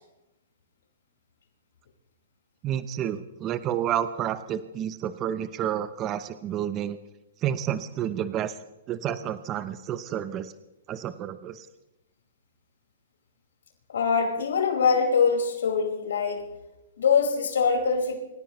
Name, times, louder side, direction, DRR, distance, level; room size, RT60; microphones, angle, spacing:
voice 1, 2.6-7.0 7.4-8.6 8.9-10.5 10.9-11.7, right 10 dB, 25° right, 12 dB, 0.7 m, -30 dB
voice 2, 13.9-16.4 17.0-18.2, left 5 dB, 85° left, 1 dB, 4.9 m, -23 dB
26.5 x 15.5 x 3.1 m, 0.96 s
hypercardioid pair, 160°, 0 cm